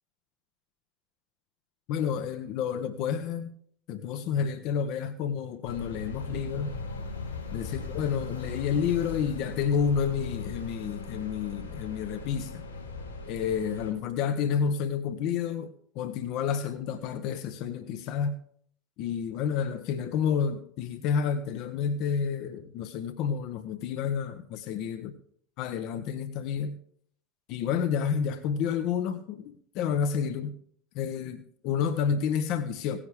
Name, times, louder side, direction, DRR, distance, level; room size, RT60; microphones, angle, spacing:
voice 1, 1.9-3.5 3.9-6.7 7.5-12.6 13.3-18.3 19.0-25.1 25.6-26.7 27.5-30.5 30.9-33.0, left 7 dB, 55° left, 9 dB, 0.8 m, -30 dB
sound 1, 5.6-13.9, left 3 dB, 85° left, 3.8 m, -38 dB
17.0 x 9.9 x 3.5 m, 0.62 s
figure-of-eight pair, 75°, 0 cm